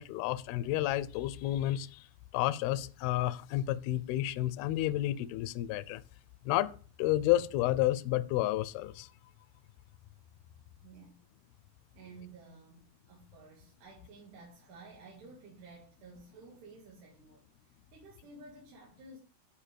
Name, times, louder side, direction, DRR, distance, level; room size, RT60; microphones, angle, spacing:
voice 1, 0.0-2.0 2.3-6.0 6.5-6.7 7.0-9.1, left 14 dB, 80° left, 2.4 m, -30 dB
voice 2, 10.8-11.2 11.9-19.2, right 3 dB, 85° right, 4.5 m, -53 dB
11.5 x 5.1 x 7.0 m
omnidirectional pair, 4.7 m